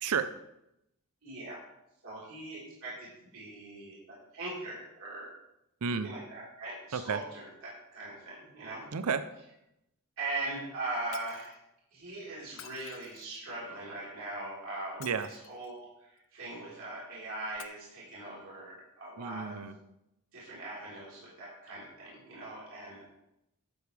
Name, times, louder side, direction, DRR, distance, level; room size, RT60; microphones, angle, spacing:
voice 1, 0.0-0.3 5.8-6.1 6.9-7.2 8.9-9.3 15.0-15.3 19.2-19.8, right 6 dB, 80° right, 12 dB, 0.6 m, -32 dB
voice 2, 1.2-1.6 2.0-5.3 6.0-8.9 10.2-11.5 11.9-15.1 15.5-19.6 20.3-23.0, right 2 dB, 65° right, -7 dB, 4.0 m, -41 dB
Shatter, 11.1-11.6 12.5-13.5 14.9-15.8 17.5-17.6, left 11 dB, 60° left, 0.6 m, -51 dB
12.0 x 8.3 x 3.3 m, 0.85 s
head